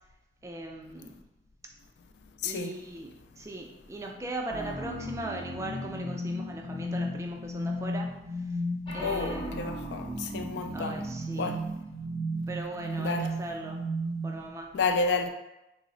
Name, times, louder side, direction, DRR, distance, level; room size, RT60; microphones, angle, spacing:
voice 1, 0.4-1.2 2.4-8.1 8.9-9.8 10.7-11.7 12.5-13.8 14.2-14.7, right 2 dB, 15° right, 0.3 m, -39 dB
voice 2, 2.4-2.8 9.0-11.0 11.3-11.6 13.0-13.3 14.7-15.3, left 4 dB, 75° left, 0.3 m, -30 dB
sound 1, 4.5-14.5, equal, 30° left, 0.6 m, -34 dB
3.1 x 2.0 x 3.7 m
head